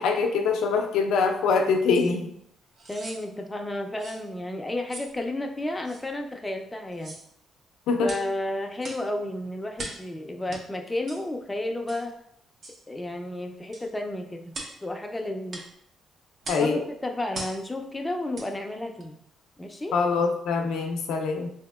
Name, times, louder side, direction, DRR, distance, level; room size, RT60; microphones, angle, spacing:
voice 1, 0.0-2.3 7.9-8.1 16.5-16.8 19.9-21.5, left 4 dB, 80° left, 4 dB, 0.5 m, -24 dB
sound 1, 1.9-2.1 2.8-3.2 4.0-4.2 4.9-5.1 5.9-6.0 6.9-7.3 8.0-8.3 8.8-9.1 9.8-10.1 10.5-10.6 11.1-11.2 11.9-12.1 12.6-12.8 13.7-13.9 14.5-14.8 15.5-15.7 16.4-16.7 17.3-17.6 18.3-18.5 19.0-19.1, right 2 dB, 55° right, 0.7 m, -39 dB
voice 2, 2.9-7.2 8.0-12.1 12.9-14.5 14.8-15.6 16.6-19.2 19.6-20.0, left 1 dB, 15° left, 4 dB, 0.4 m, -32 dB
3.4 x 2.8 x 2.3 m, 0.71 s
cardioid pair, 90°, 0 cm